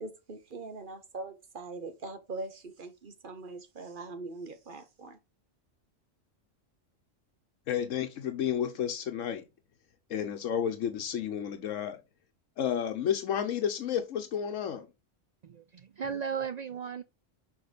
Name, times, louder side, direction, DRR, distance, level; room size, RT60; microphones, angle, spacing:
voice 1, 0.0-5.2, right 3 dB, 45° right, 1.1 m, -42 dB
voice 2, 7.7-9.4 10.1-12.0 12.6-14.9, left 9 dB, 85° left, 1.1 m, -31 dB
voice 3, 15.4-17.0, right 6 dB, 85° right, 0.3 m, -36 dB
6.2 x 5.2 x 5.0 m
omnidirectional pair, 1.3 m